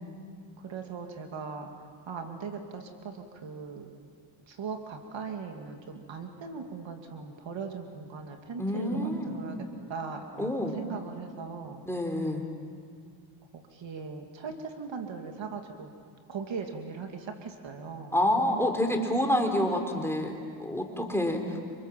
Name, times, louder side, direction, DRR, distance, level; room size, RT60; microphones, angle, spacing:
voice 1, 0.6-1.7 2.1-3.9 4.5-9.6 9.9-11.9 13.7-15.9 16.3-18.2, right 5 dB, 65° right, 4 dB, 2.5 m, -39 dB
voice 2, 8.6-9.4 10.4-10.8 11.9-12.5 18.1-21.6, left 1 dB, 5° left, 2 dB, 4.1 m, -28 dB
28.0 x 26.0 x 7.5 m, 2.1 s
cardioid pair, 85°, 49 cm